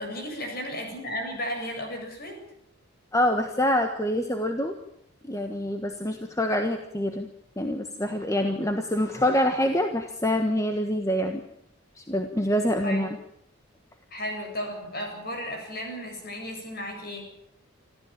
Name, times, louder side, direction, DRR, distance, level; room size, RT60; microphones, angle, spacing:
voice 1, 0.0-2.4 12.8-13.1 14.1-17.2, equal, 45° left, 3 dB, 7.7 m, -34 dB
voice 2, 3.1-4.7 5.2-7.3 7.6-11.4 11.9-13.2, left 1 dB, 15° left, 5 dB, 1.4 m, -26 dB
27.5 x 14.0 x 9.0 m, 0.75 s
head